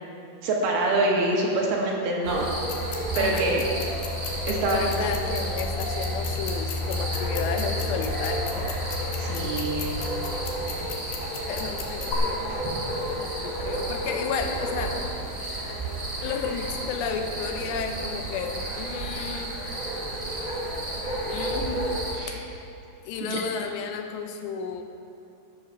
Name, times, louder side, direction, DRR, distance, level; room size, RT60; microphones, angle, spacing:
voice 1, 0.4-2.5 3.2-3.6 4.5-5.0 9.2-10.0 22.2-22.4 23.3-23.6, right 2 dB, 70° right, -2 dB, 3.3 m, -25 dB
sound 1, 2.2-22.2, equal, 25° right, 0.8 m, -31 dB
sound 2, 2.7-12.1, left 7 dB, 70° left, 2.7 m, -39 dB
voice 2, 3.1-3.5 4.1-4.2 4.7-8.8 10.6-10.9 11.5-15.0 15.3-15.5 16.2-19.6 21.3-21.9 22.3-22.4 23.1-24.8, left 6 dB, 85° left, 5 dB, 3.0 m, -33 dB
12.5 x 7.9 x 6.0 m, 2.8 s
omnidirectional pair, 4.9 m